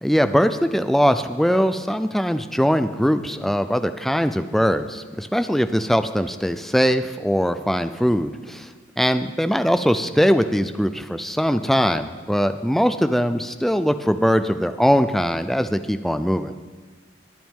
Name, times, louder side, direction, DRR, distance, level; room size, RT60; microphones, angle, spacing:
voice 1, 0.0-8.7 9.0-16.5, equal, ahead, 10 dB, 0.4 m, -21 dB
23.0 x 9.0 x 3.7 m, 1.4 s
head